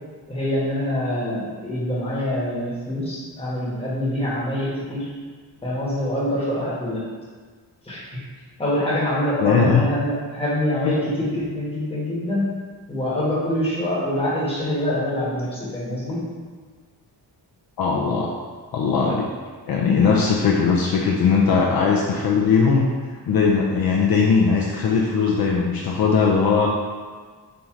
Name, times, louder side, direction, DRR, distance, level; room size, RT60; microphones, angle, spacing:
voice 1, 0.3-5.1 5.6-7.1 7.8-8.2 8.6-12.5 12.9-16.3, left 1 dB, 15° left, -8 dB, 1.3 m, -25 dB
voice 2, 9.4-9.8 10.8-10.9 17.8-18.3 18.7-19.3 19.7-22.9 23.3-26.7, left 5 dB, 60° left, -2 dB, 0.5 m, -19 dB
4.5 x 2.7 x 3.7 m, 1.5 s
wide cardioid pair, 120°, 41 cm